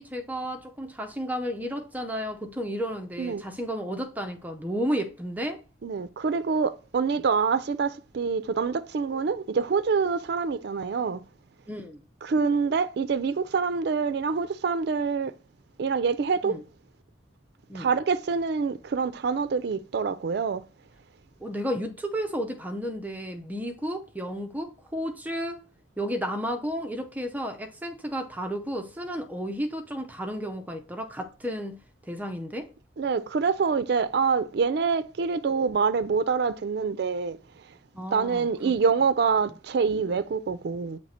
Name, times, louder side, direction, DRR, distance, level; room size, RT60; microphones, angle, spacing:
voice 1, 0.0-5.6 11.7-12.0 16.4-16.6 17.7-17.9 21.4-25.6 26.0-31.8 32.1-32.7 37.9-38.7, equal, 10° right, 0.5 m, -32 dB
voice 2, 5.8-11.2 12.2-15.3 15.8-16.5 17.7-20.6 33.0-37.4 38.1-41.0, right 5 dB, 60° right, 0.4 m, -26 dB
7.4 x 3.2 x 4.2 m
head